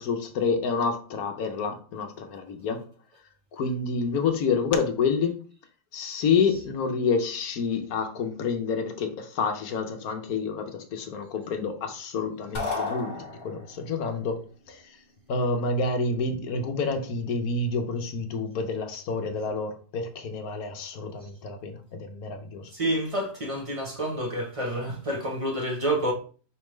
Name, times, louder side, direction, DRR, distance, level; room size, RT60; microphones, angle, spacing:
voice 1, 0.0-2.9 3.5-5.4 5.9-14.4 14.7-15.0 15.3-22.7, left 4 dB, 65° left, 1.1 m, -28 dB
sound 1, 12.5-13.8, left 3 dB, 30° left, 1.1 m, -32 dB
voice 2, 22.7-26.1, right 1 dB, 30° right, 0.7 m, -28 dB
5.1 x 3.4 x 3.1 m
omnidirectional pair, 1.8 m